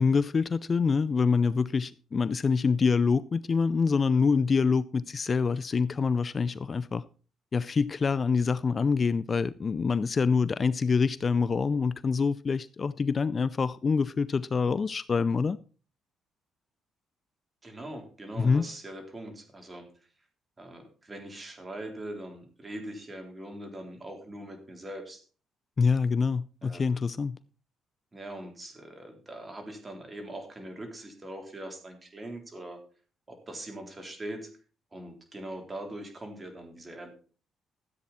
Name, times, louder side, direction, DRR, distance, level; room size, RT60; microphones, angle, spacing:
voice 1, 0.0-7.0 7.5-15.6 18.4-18.6 25.8-27.4, left 5 dB, 40° left, 0.4 m, -26 dB
voice 2, 17.6-19.9 20.6-25.2 26.6-27.0 28.1-32.8 33.3-34.5 34.9-37.1, right 1 dB, 25° right, 3.6 m, -42 dB
13.5 x 8.5 x 4.2 m
cardioid pair, 90°, 0 cm